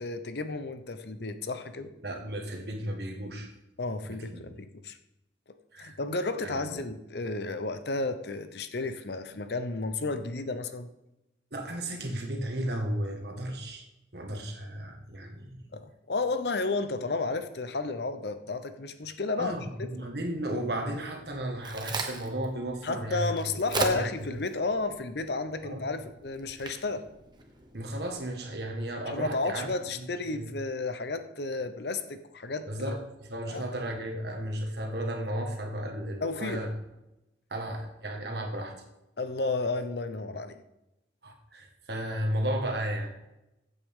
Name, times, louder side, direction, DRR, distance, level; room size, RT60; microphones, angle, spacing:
voice 1, 0.0-1.9 3.8-5.0 5.8-10.9 15.7-19.6 22.8-27.1 29.1-33.0 33.5-33.6 36.2-36.6 39.2-40.6, left 3 dB, 65° left, 10 dB, 0.7 m, -32 dB
voice 2, 2.0-3.5 4.0-4.5 5.7-6.0 6.4-6.8 11.5-15.7 19.4-24.3 25.6-25.9 27.7-29.7 29.9-30.5 32.7-36.7 37.5-38.7 41.2-43.1, right 1 dB, 65° right, 3 dB, 1.7 m, -34 dB
Crack, 21.2-28.1, right 2 dB, 25° right, 1.2 m, -39 dB
15.5 x 8.0 x 3.7 m, 0.95 s
head